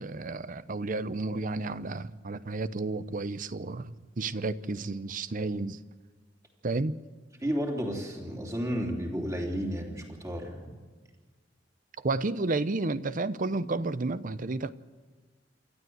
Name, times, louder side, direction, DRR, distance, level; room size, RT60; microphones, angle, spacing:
voice 1, 0.0-5.8 6.6-7.0 12.0-14.7, right 3 dB, 45° right, 0.7 m, -31 dB
voice 2, 7.4-10.7, equal, 15° right, 3.2 m, -32 dB
28.0 x 12.5 x 7.9 m
head